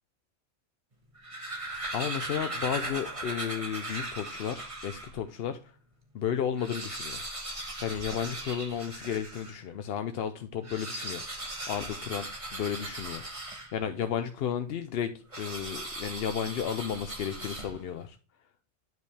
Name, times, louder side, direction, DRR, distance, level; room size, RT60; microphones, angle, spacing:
sound 1, 1.0-5.2 5.7-5.8 6.0-6.1 6.5-9.6 10.5-14.0 15.3-18.0, right 2 dB, 30° right, 1.4 m, -38 dB
voice 1, 1.6-5.6 6.1-7.2 7.8-12.3 12.5-13.2 13.7-15.1 15.4-18.2, left 8 dB, 65° left, 8 dB, 0.7 m, -33 dB
9.3 x 5.3 x 3.3 m, 0.36 s
omnidirectional pair, 1.2 m